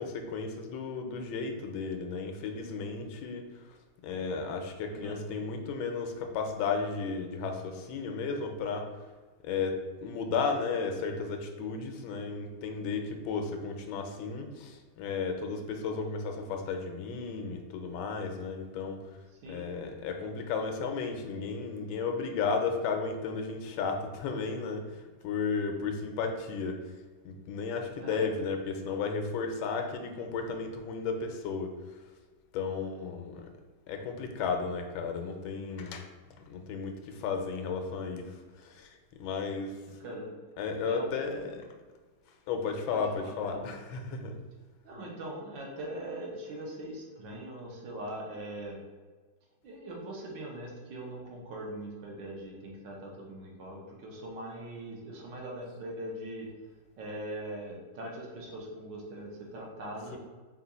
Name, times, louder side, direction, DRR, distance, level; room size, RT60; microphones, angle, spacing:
voice 1, 0.0-3.4 4.0-8.9 9.4-19.0 19.5-26.8 27.2-31.7 32.5-33.5 33.9-36.0 36.5-38.3 38.7-38.9 39.2-39.7 40.6-41.7 42.5-44.3 60.1-60.2, left 5 dB, 90° left, 4 dB, 1.4 m, -34 dB
voice 2, 4.9-5.3 19.4-19.7 28.0-28.3 40.0-40.6 40.8-41.4 42.9-43.0 43.2-43.7 44.8-48.8 49.6-56.5 57.0-60.2, right 1 dB, 75° right, -2 dB, 1.5 m, -41 dB
3.8 x 2.4 x 4.0 m, 1.4 s
omnidirectional pair, 2.1 m